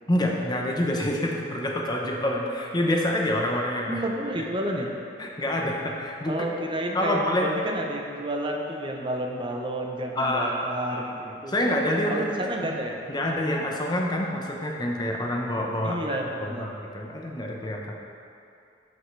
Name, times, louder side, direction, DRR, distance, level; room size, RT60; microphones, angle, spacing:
voice 1, 0.1-4.0 5.2-6.4 6.9-7.5 10.2-10.6 10.9-12.3 12.6-12.8 13.1-17.9, left 1 dB, 20° left, -1 dB, 0.9 m, -27 dB
voice 2, 3.9-4.9 6.3-11.5 12.1-13.0 15.8-16.7, right 1 dB, 25° right, 1 dB, 0.8 m, -30 dB
13.5 x 5.6 x 3.3 m, 2.6 s
head